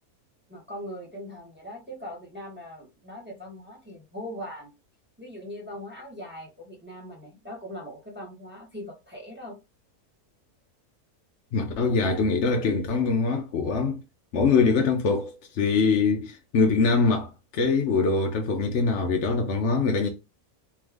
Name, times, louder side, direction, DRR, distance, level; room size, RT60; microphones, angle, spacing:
voice 1, 0.5-4.7 5.2-9.6, equal, 10° right, 1.3 m, -40 dB
voice 2, 11.5-14.0 14.3-20.1, left 4 dB, 60° left, 0.9 m, -23 dB
3.4 x 3.3 x 3.5 m
omnidirectional pair, 1.6 m